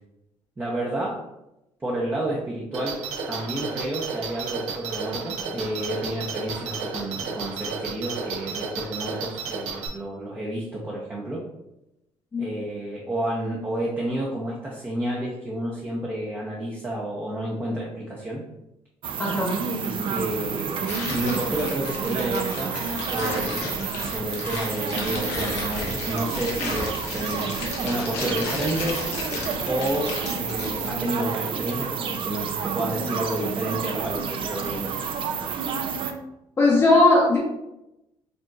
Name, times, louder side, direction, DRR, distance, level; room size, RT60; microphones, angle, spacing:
voice 1, 0.6-1.2 1.8-3.0 3.3-11.4 12.4-18.5 19.7-22.7 23.0-23.7 24.0-29.0 29.7-34.9, right 1 dB, 20° right, -4 dB, 0.7 m, -30 dB
sound 1, 2.7-9.9, right 5 dB, 75° right, 0.8 m, -32 dB
sound 2, 19.0-36.1, right 6 dB, 50° right, 0.5 m, -30 dB
voice 2, 19.2-19.5 36.6-37.4, left 2 dB, 25° left, -5 dB, 0.7 m, -18 dB
Tearing, 20.8-31.0, left 3 dB, 90° left, 1.0 m, -34 dB
5.1 x 2.9 x 2.3 m, 0.90 s
cardioid pair, 115°, 11 cm